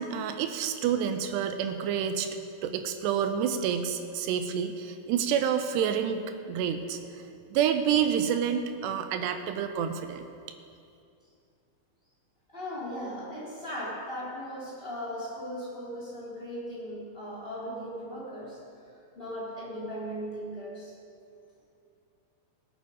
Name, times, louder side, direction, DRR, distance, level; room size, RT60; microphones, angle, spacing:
voice 1, 0.0-2.3 2.6-7.0 7.5-10.2, right 8 dB, 80° right, 8 dB, 2.6 m, -28 dB
voice 2, 12.5-18.6 19.1-20.9, equal, 15° left, -7 dB, 2.5 m, -37 dB
18.0 x 8.9 x 4.9 m, 2.5 s
omnidirectional pair, 5.1 m